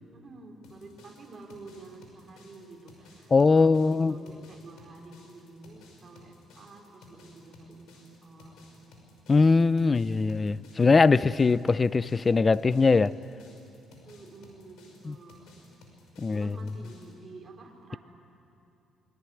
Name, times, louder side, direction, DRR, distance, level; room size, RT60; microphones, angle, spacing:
voice 1, 0.1-8.7 14.0-15.7 16.3-18.0, right 3 dB, 35° right, 1 dB, 4.6 m, -49 dB
sound 1, 0.6-17.1, left 2 dB, 85° left, 5.8 m, -56 dB
voice 2, 3.3-4.2 9.3-13.2 15.0-15.2 16.2-16.6, left 4 dB, 25° left, 18 dB, 0.5 m, -21 dB
25.0 x 22.5 x 10.0 m, 2.8 s
cardioid pair, 110°, 0 cm